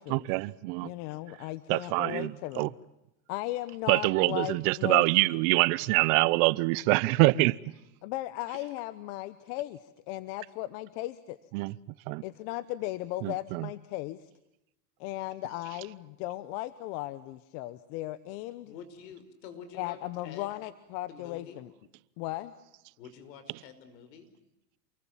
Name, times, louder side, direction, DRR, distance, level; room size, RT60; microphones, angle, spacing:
voice 1, 0.1-0.9 1.7-2.7 3.9-7.6 11.5-11.7 12.1-12.2 13.2-13.7, right 23 dB, 55° right, 0.9 m, -25 dB
voice 2, 0.8-2.7 3.3-5.1 8.0-11.4 12.2-14.3 15.0-18.7 19.7-21.7 22.2-22.5, left 16 dB, 55° left, 1.3 m, -36 dB
voice 3, 18.6-20.5 21.1-21.6 23.0-24.3, left 7 dB, 80° left, 5.3 m, -48 dB
28.5 x 22.5 x 7.4 m
supercardioid pair, 130°, 49 cm